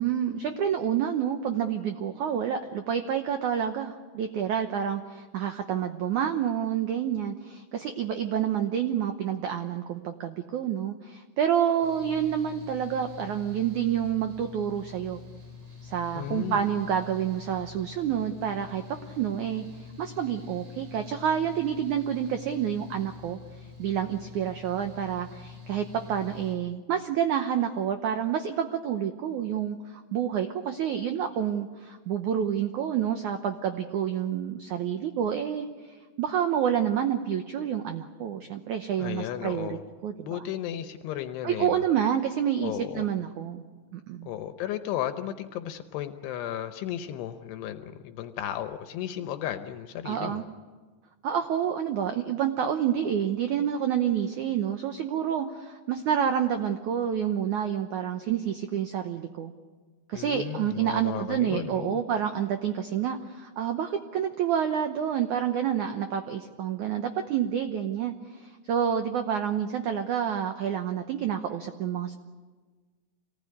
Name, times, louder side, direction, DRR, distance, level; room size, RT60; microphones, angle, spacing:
voice 1, 0.0-15.2 15.8-19.6 20.0-23.4 23.8-40.5 41.4-43.6 43.9-44.3 50.0-50.4 51.2-59.5 60.1-72.2, right 9 dB, 85° right, 7 dB, 1.7 m, -28 dB
Mechanical fan, 11.8-26.5, left 6 dB, 60° right, 6.8 m, -46 dB
voice 2, 16.2-16.6 39.0-39.8 40.2-41.8 42.6-43.1 44.3-50.4 60.1-62.0, left 11 dB, 80° left, 8 dB, 2.9 m, -34 dB
26.5 x 19.0 x 9.8 m, 1.4 s
omnidirectional pair, 4.8 m